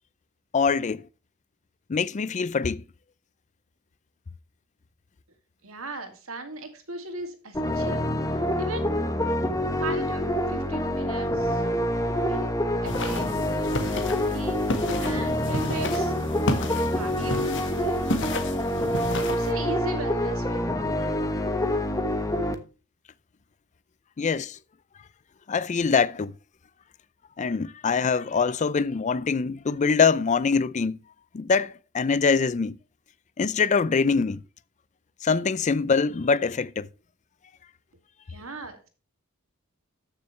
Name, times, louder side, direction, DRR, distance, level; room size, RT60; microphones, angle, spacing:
voice 1, 0.5-1.0 1.9-2.8 24.2-24.6 25.5-26.3 27.4-31.0 31.3-32.8 33.4-34.4 35.2-36.9, left 5 dB, 35° left, 0.4 m, -24 dB
voice 2, 5.6-8.9 9.8-11.6 12.2-12.5 12.8-14.6 15.0-16.1 16.9-18.0 19.3-20.8 38.3-38.9, right 2 dB, 70° right, 2.5 m, -38 dB
sound 1, 7.5-22.5, left 1 dB, 15° left, 1.2 m, -26 dB
sound 2, 12.8-19.5, left 2 dB, 60° left, 1.7 m, -32 dB
14.0 x 6.6 x 3.2 m
head